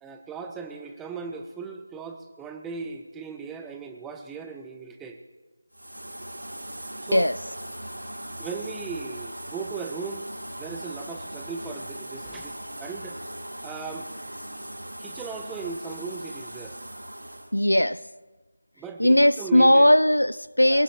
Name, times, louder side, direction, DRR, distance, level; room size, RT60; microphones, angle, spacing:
voice 1, 0.0-5.2 7.0-7.3 8.4-10.2 10.6-13.2 13.6-14.1 15.0-16.8 18.8-20.0 20.6-20.8, right 5 dB, 5° right, 0.8 m, -37 dB
sound 1, 5.7-17.5, right 1 dB, 85° right, 3.2 m, -39 dB
voice 2, 17.5-18.1 19.0-20.8, left 1 dB, 85° left, 0.4 m, -18 dB
24.0 x 19.0 x 2.9 m
figure-of-eight pair, 160°, 0 cm